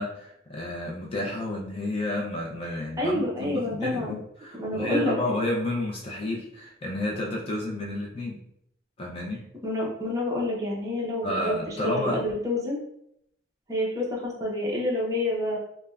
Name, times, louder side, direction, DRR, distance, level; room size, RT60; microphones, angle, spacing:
voice 1, 0.0-8.4 9.0-9.4 11.2-12.2, left 1 dB, 30° left, -2 dB, 0.4 m, -31 dB
voice 2, 3.0-4.2 4.6-5.2 9.6-11.6 11.8-12.8 13.7-15.6, left 1 dB, 20° right, -3 dB, 0.6 m, -28 dB
3.3 x 2.1 x 2.3 m, 0.76 s
head